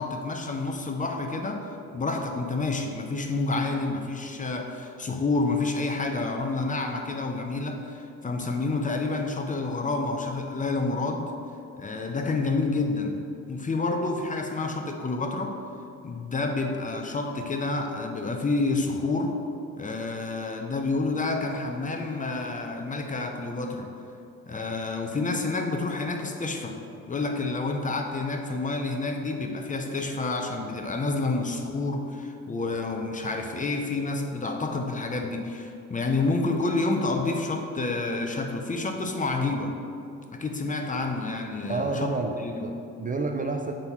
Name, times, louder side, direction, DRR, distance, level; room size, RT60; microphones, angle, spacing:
voice 1, 0.0-1.6 1.9-11.3 11.8-13.2 13.5-15.6 16.0-19.4 19.8-23.9 24.5-26.8 27.1-39.8 40.3-42.6, left 3 dB, 25° left, 3 dB, 0.7 m, -29 dB
voice 2, 41.7-43.7, right 3 dB, 30° right, 4 dB, 0.4 m, -30 dB
6.2 x 3.8 x 5.7 m, 2.6 s
cardioid pair, 90°, 30 cm